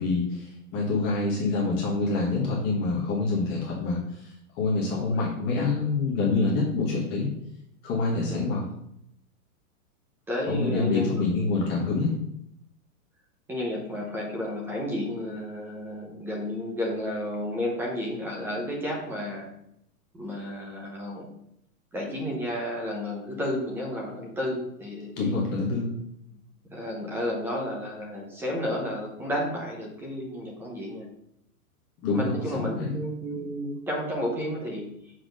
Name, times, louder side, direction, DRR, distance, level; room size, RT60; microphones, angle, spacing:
voice 1, 0.0-7.3 7.8-8.7 10.5-12.1 25.2-25.9 32.0-32.9, left 3 dB, 20° left, -4 dB, 1.3 m, -26 dB
voice 2, 10.3-11.3 13.5-19.5 20.1-21.3 21.9-25.3 26.7-31.1 32.1-34.9, left 1 dB, 5° right, -1 dB, 0.8 m, -32 dB
6.0 x 4.7 x 6.4 m, 0.77 s
supercardioid pair, 165°, 45 cm